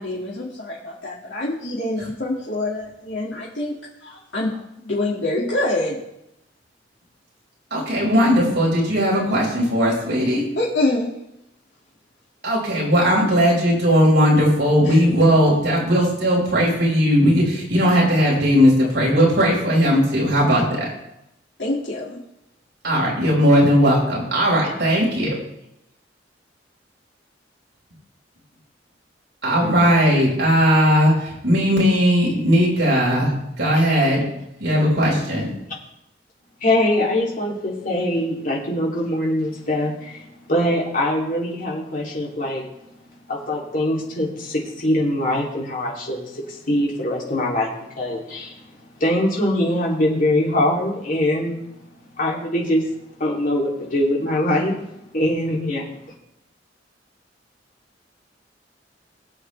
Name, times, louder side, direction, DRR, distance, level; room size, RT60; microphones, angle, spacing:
voice 1, 0.0-3.7 4.0-6.0 10.6-11.1 14.8-15.0 21.6-22.2, left 2 dB, 75° left, -6 dB, 2.5 m, -25 dB
voice 2, 7.7-10.5 12.4-20.9 22.8-25.4 29.4-34.2 34.6-35.5, equal, 65° right, -4 dB, 5.7 m, -18 dB
voice 3, 36.6-42.7 43.1-51.7 52.1-52.8 53.2-54.8 55.1-55.8, left 1 dB, 50° left, -3 dB, 3.2 m, -23 dB
21.5 x 8.2 x 3.5 m, 0.83 s
head